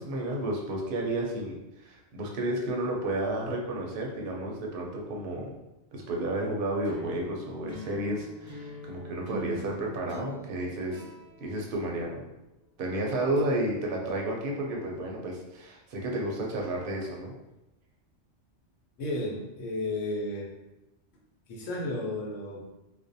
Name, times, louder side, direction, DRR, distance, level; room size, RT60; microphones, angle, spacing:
voice 1, 0.0-5.6 5.9-11.0 11.4-12.2 12.8-17.3, right 1 dB, 60° right, -1 dB, 0.6 m, -32 dB
sound 1, 6.8-12.4, right 1 dB, 55° left, 1.0 m, -44 dB
voice 2, 19.0-20.5 21.5-22.6, left 1 dB, 90° left, -1 dB, 1.0 m, -33 dB
2.4 x 2.1 x 2.6 m, 0.95 s
omnidirectional pair, 1.3 m